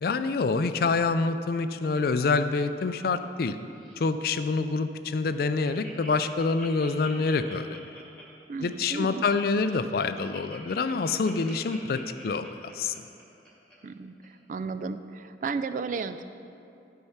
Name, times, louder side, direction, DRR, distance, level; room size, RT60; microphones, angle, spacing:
voice 1, 0.0-3.6 4.0-7.8 8.6-12.9, left 4 dB, 55° left, 11 dB, 0.4 m, -26 dB
Laughter, 1.7-3.5 3.7-4.1 4.6-4.7 5.0-5.1 5.3-13.7 14.2-14.3, right 1 dB, 5° left, 1.8 m, -47 dB
voice 2, 8.5-9.2 13.8-16.2, right 4 dB, 45° right, 11 dB, 0.3 m, -34 dB
12.0 x 4.7 x 5.6 m, 2.6 s
head